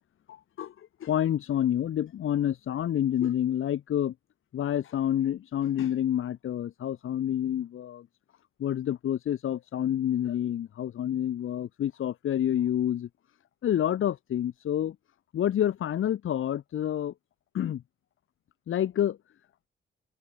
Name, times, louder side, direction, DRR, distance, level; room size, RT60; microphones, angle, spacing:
voice 1, 1.0-4.1 4.5-8.1 8.6-13.1 13.6-15.0 15.3-17.1 17.5-17.8 18.7-19.2, left 10 dB, 85° left, 4.3 m, -28 dB
wide cardioid pair, 135°, 20 cm